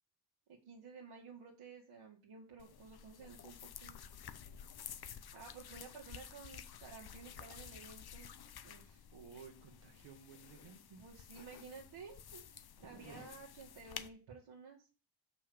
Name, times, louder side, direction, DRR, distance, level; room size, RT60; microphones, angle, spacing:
voice 1, 0.5-4.0 5.3-8.3 8.6-9.0 11.0-14.9, right 5 dB, 90° right, -2 dB, 2.0 m, -54 dB
sound 1, 2.6-14.1, left 8 dB, 50° left, 0.7 m, -52 dB
voice 2, 9.1-11.0 12.8-13.3, right 6 dB, 65° right, 3 dB, 1.4 m, -55 dB
6.6 x 5.6 x 7.0 m, 0.33 s
wide cardioid pair, 160°, 48 cm